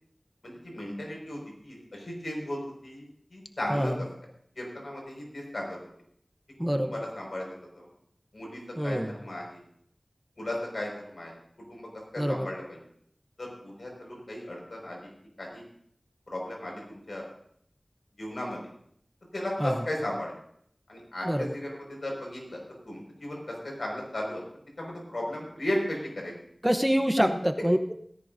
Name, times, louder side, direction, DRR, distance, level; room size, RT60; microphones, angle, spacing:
voice 1, 0.4-4.1 4.6-5.8 6.8-7.5 7.8-7.9 8.3-9.6 10.4-11.4 11.7-11.9 12.1-12.8 13.4-15.1 15.4-15.6 16.3-17.2 18.2-18.6 19.3-20.3 20.9-22.6 22.9-24.4 24.8-26.3 27.2-27.3, left 1 dB, 85° left, -1 dB, 5.4 m, -35 dB
voice 2, 6.6-6.9 8.8-9.1 12.2-12.5 19.6-19.8 21.2-21.5 26.6-27.9, equal, 5° right, 6 dB, 0.9 m, -26 dB
17.0 x 15.5 x 2.7 m, 0.65 s
wide cardioid pair, 50°, 0 cm